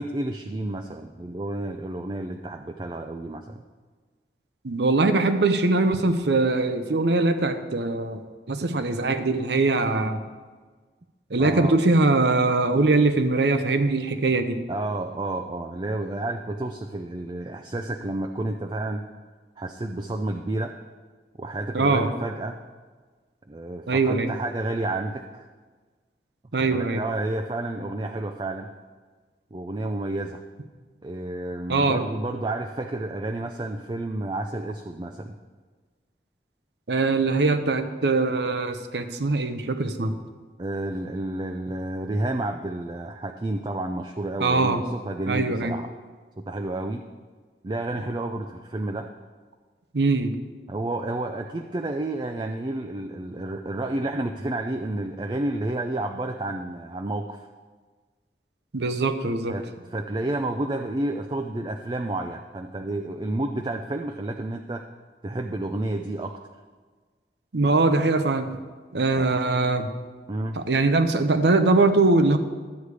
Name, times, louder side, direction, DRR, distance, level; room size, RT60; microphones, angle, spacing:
voice 1, 0.0-3.6 11.4-11.8 14.7-19.1 19.6-20.8 21.4-22.6 23.5-25.5 26.6-28.7 29.5-30.4 31.0-35.4 40.6-45.9 46.4-47.1 47.6-49.1 50.7-57.5 59.5-64.9 65.2-66.4 69.1-69.4 70.3-70.6, right 2 dB, 25° right, 5 dB, 0.4 m, -30 dB
voice 2, 4.6-8.2 8.5-10.2 11.3-14.6 21.7-22.1 23.9-24.3 26.5-27.0 31.7-32.0 36.9-40.1 44.4-44.8 45.3-45.7 49.9-50.3 58.7-59.6 67.5-68.5 68.9-69.9 70.6-72.4, right 3 dB, 75° right, 9 dB, 0.8 m, -22 dB
11.5 x 8.2 x 4.9 m, 1.4 s
head